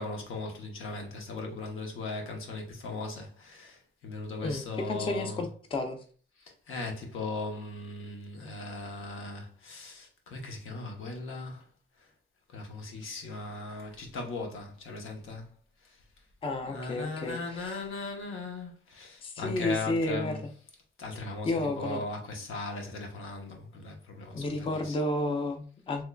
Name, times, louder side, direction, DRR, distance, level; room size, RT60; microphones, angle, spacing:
voice 1, 0.0-5.4 6.4-11.7 12.5-15.5 15.8-16.0 16.6-20.4 21.0-25.0, left 3 dB, 85° left, 0.9 m, -38 dB
voice 2, 4.4-6.0 16.4-17.8 19.2-20.4 21.4-22.0 24.3-26.0, left 2 dB, 25° left, 0.4 m, -32 dB
3.6 x 3.0 x 2.2 m
wide cardioid pair, 150°, 20 cm